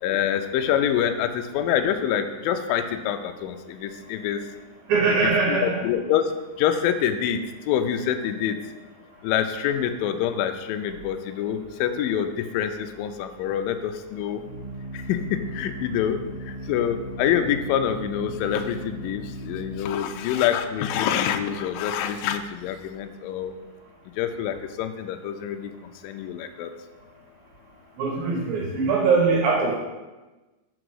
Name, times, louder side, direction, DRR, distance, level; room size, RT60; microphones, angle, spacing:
voice 1, 0.0-4.4 5.2-6.3 6.6-7.4 7.7-8.6 9.2-14.4 14.9-16.2 16.5-23.5 24.2-26.7, left 9 dB, 90° left, 7 dB, 2.0 m, -26 dB
voice 2, 4.9-5.8 28.0-29.8, right 4 dB, 70° right, -1 dB, 2.8 m, -22 dB
Organ, 12.6-23.1, equal, 90° right, 2.8 m, -39 dB
5.3 x 5.0 x 6.2 m, 1.2 s
omnidirectional pair, 4.6 m